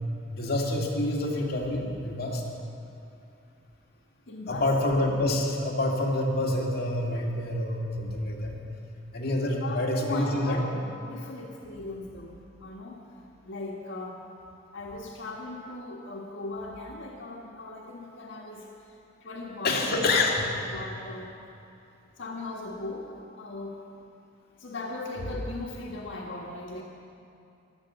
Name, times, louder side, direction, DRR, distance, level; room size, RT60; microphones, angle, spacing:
voice 1, 0.3-2.4 4.5-8.6 9.1-10.6 19.6-20.5, left 2 dB, 55° left, -2 dB, 2.3 m, -27 dB
voice 2, 4.3-4.7 9.6-13.0 13.4-14.3 14.7-19.9 20.6-21.3 22.2-23.8 24.6-26.8, left 2 dB, 85° left, -2 dB, 1.5 m, -38 dB
16.0 x 12.0 x 6.9 m, 2.7 s
head